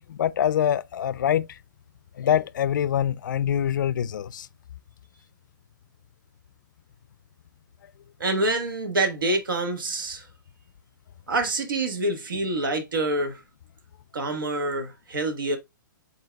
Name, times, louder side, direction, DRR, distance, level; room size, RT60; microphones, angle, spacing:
voice 1, 0.0-1.6 2.2-4.5, left 10 dB, 70° left, 0.4 m, -25 dB
voice 2, 8.2-10.3 11.3-13.4 14.1-15.6, right 2 dB, 85° right, 1.5 m, -26 dB
7.9 x 2.8 x 2.2 m
hypercardioid pair, 145°, 11 cm